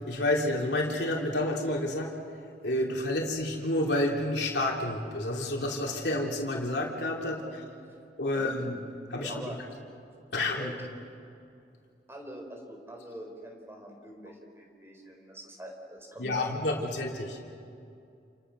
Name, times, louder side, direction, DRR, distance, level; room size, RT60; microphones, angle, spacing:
voice 1, 0.1-2.2 2.6-7.5 8.2-8.8 9.1-9.4 10.3-10.7 16.2-17.5, left 1 dB, 70° left, -1 dB, 3.2 m, -29 dB
voice 2, 7.3-7.6 8.3-8.5 9.1-10.0 10.6-10.9 12.1-16.8, equal, 15° right, 2 dB, 4.1 m, -44 dB
29.0 x 29.0 x 6.3 m, 2.5 s
head